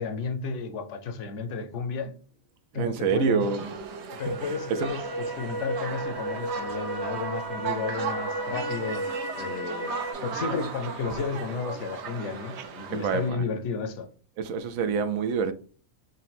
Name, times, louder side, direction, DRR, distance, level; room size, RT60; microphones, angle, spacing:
voice 1, 0.0-2.2 2.7-3.5 4.2-5.0 5.4-9.0 9.4-14.1 14.8-14.9, left 4 dB, 70° left, 0.9 m, -32 dB
voice 2, 2.7-3.7 4.1-4.9 12.9-13.5 14.4-15.5, right 5 dB, 90° right, 1.0 m, -27 dB
sound 1, 3.4-13.3, right 6 dB, 65° right, 0.9 m, -37 dB
sound 2, 4.2-10.1, right 1 dB, 40° right, 0.3 m, -34 dB
3.8 x 2.2 x 4.0 m
omnidirectional pair, 1.4 m